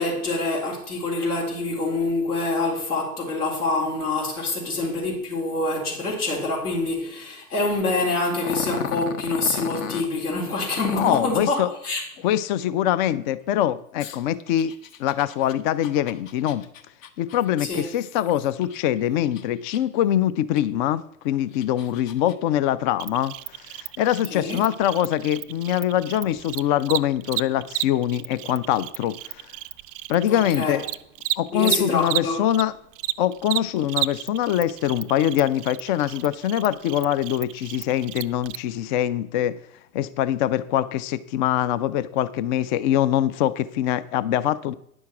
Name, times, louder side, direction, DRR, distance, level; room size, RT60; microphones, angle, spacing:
voice 1, 0.0-12.0 17.6-17.8 24.3-24.6 30.3-30.8 31.5-32.4, left 2 dB, 85° left, 4.1 m, -26 dB
Growling, 8.4-10.1 10.8-11.4 14.0-18.8 19.2-20.0 20.6-20.7 21.3-22.3, left 8 dB, 60° left, 1.1 m, -35 dB
voice 2, 11.0-11.7 12.2-14.7 15.0-16.6 17.2-29.5 30.1-30.8 31.4-32.7 33.2-39.6 39.9-44.7, left 11 dB, 35° left, 0.4 m, -23 dB
Cricket, 23.0-32.6 32.9-38.6, right 16 dB, 40° right, 0.4 m, -32 dB
9.7 x 6.2 x 5.8 m
hypercardioid pair, 100°, 45 cm